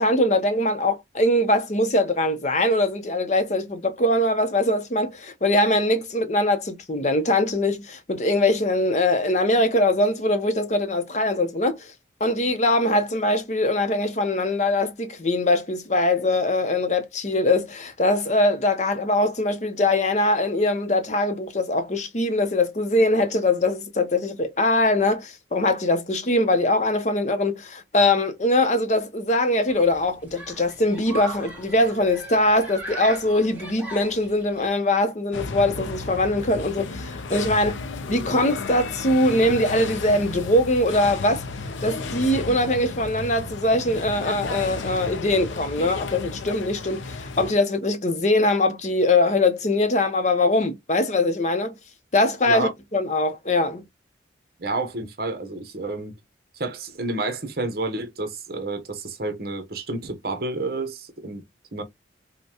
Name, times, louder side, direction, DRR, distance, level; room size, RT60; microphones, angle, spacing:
voice 1, 0.0-11.9 12.2-37.8 38.1-41.4 41.8-51.7 52.1-53.8, left 1 dB, 40° left, 0.7 m, -22 dB
Human group actions, 29.7-34.7, right 2 dB, 10° right, 1.5 m, -39 dB
sound 1, 35.3-47.5, left 4 dB, 90° left, 0.6 m, -33 dB
voice 2, 54.6-56.2 56.5-61.4 61.7-61.8, right 2 dB, 50° right, 1.0 m, -30 dB
5.3 x 2.2 x 2.9 m
head